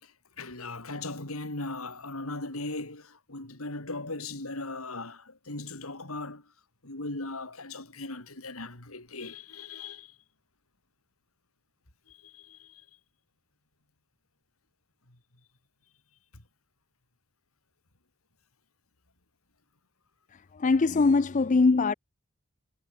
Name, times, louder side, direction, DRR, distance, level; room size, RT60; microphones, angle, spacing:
voice 1, 0.0-6.5 6.8-10.2 12.1-12.9 16.3-16.4, left 2 dB, 90° left, 4.5 m, -38 dB
voice 2, 20.3-21.9, left 3 dB, 35° left, 0.4 m, -22 dB
head